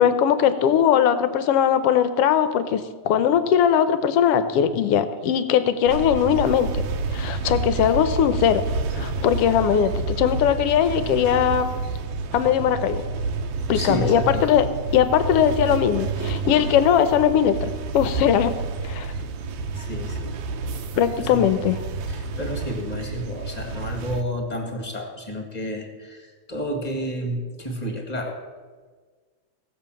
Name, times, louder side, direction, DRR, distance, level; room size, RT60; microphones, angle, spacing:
voice 1, 0.0-6.8 7.1-8.6 8.9-11.7 12.3-13.0 13.7-14.7 14.9-18.5 18.8-19.1 21.0-21.8, left 9 dB, 70° left, 12 dB, 1.5 m, -20 dB
sound 1, 5.9-24.2, right 3 dB, 80° right, 2.3 m, -29 dB
voice 2, 13.7-14.5 19.7-20.4 21.0-21.4 22.1-28.4, equal, 20° left, 3 dB, 1.3 m, -31 dB
17.0 x 7.1 x 7.5 m, 1.5 s
omnidirectional pair, 3.3 m